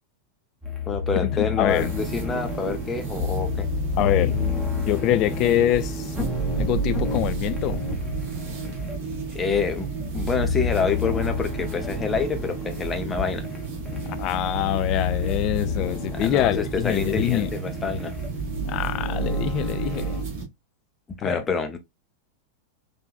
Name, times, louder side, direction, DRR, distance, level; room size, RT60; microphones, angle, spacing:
sound 1, 0.6-20.2, left 4 dB, 10° right, 1.1 m, -30 dB
voice 1, 0.9-3.7 9.3-9.9 10.1-13.5 16.1-18.1 21.1-21.8, left 5 dB, 20° left, 0.7 m, -27 dB
voice 2, 1.6-1.9 4.0-4.3 4.9-6.1 6.6-7.8 14.2-17.5 18.6-20.3 21.2-21.4, left 12 dB, 40° left, 0.3 m, -25 dB
sound 2, 1.7-20.4, right 5 dB, 50° right, 1.3 m, -33 dB
3.7 x 2.6 x 2.4 m
figure-of-eight pair, 90°, 0 cm